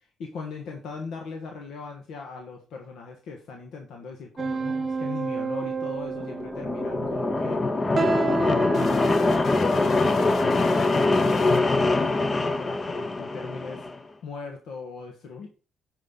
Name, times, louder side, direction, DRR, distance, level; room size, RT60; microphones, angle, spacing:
voice 1, 0.2-7.6 7.9-11.1 11.4-13.8 14.2-15.5, left 4 dB, 80° left, 2 dB, 1.3 m, -39 dB
sound 1, 4.4-9.4, right 4 dB, 40° right, 0.9 m, -30 dB
sound 2, 6.1-14.0, left 2 dB, 30° left, 0.7 m, -24 dB
sound 3, 8.7-12.3, left 7 dB, 60° left, 0.4 m, -36 dB
9.8 x 5.3 x 3.8 m, 0.36 s
cardioid pair, 90°, 0 cm